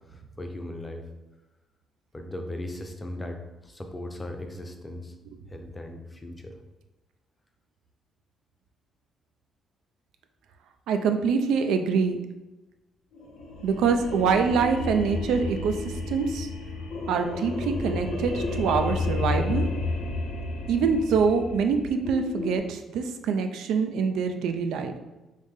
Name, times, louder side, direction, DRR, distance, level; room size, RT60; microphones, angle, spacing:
voice 1, 0.1-1.0 2.1-5.1 5.5-6.6, left 1 dB, 20° left, 4 dB, 0.5 m, -38 dB
voice 2, 10.9-12.2 13.6-15.7 16.1-16.5 17.1-19.7 20.7-25.0, right 5 dB, 85° right, 7 dB, 0.3 m, -25 dB
sound 1, 13.1-22.6, left 3 dB, 90° left, 0.6 m, -32 dB
3.2 x 2.7 x 3.5 m, 1.1 s
cardioid pair, 90°, 0 cm